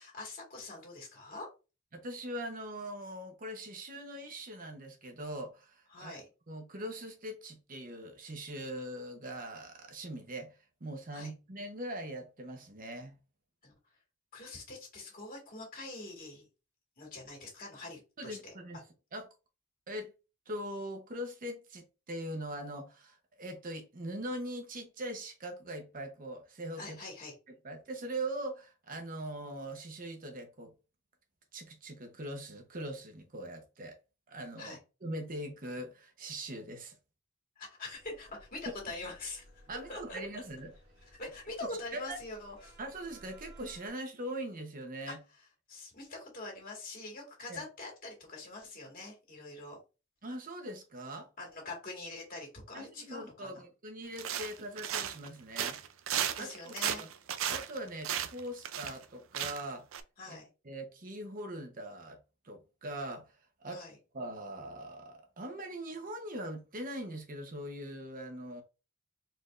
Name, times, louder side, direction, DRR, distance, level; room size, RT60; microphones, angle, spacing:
voice 1, 0.0-1.5 5.9-6.3 11.1-11.3 13.6-13.7 14.3-16.4 17.0-18.5 26.8-27.3 34.6-34.8 37.6-39.4 39.9-40.2 41.2-42.8 45.1-45.2 45.7-49.8 51.4-53.6 56.4-57.0 60.2-60.5 63.7-64.0, left 2 dB, 45° left, 2.0 m, -44 dB
voice 2, 1.9-6.2 6.5-13.1 18.2-18.8 19.1-19.3 19.9-20.1 20.5-27.0 27.6-30.7 31.5-34.0 34.3-37.0 39.7-40.7 41.9-42.2 42.8-45.2 47.5-47.6 50.2-51.3 52.7-55.8 56.4-57.1 57.5-59.8 60.3-60.4 60.6-62.2 62.4-63.3 63.6-63.8 64.1-68.6, right 1 dB, 45° right, 0.9 m, -41 dB
sound 1, 37.9-43.9, right 1 dB, 65° right, 2.0 m, -58 dB
sound 2, 54.2-55.3 55.6-59.0 59.3-59.7 59.9-60.0, right 9 dB, 90° right, 0.5 m, -35 dB
4.3 x 3.4 x 2.4 m
head